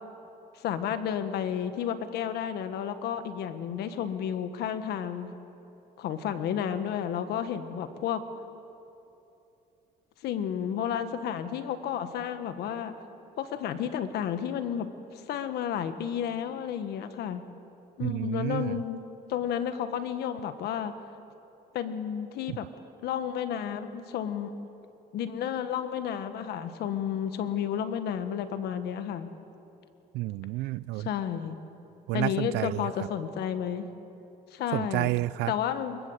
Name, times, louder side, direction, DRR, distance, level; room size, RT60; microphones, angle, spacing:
voice 1, 0.6-5.4 6.0-8.2 10.2-12.9 13.4-14.9 15.1-17.4 18.0-19.0 19.3-20.9 21.7-22.7 23.0-24.5 25.1-29.3 31.0-31.6 32.1-33.9 34.5-35.1 35.5-36.0, left 9 dB, 75° left, 10 dB, 1.5 m, -31 dB
voice 2, 18.0-18.8 22.5-22.6 30.1-31.1 32.1-33.1 34.7-35.5, right 18 dB, 85° right, 20 dB, 0.5 m, -30 dB
23.5 x 22.0 x 8.0 m, 2.9 s
cardioid pair, 110°, 17 cm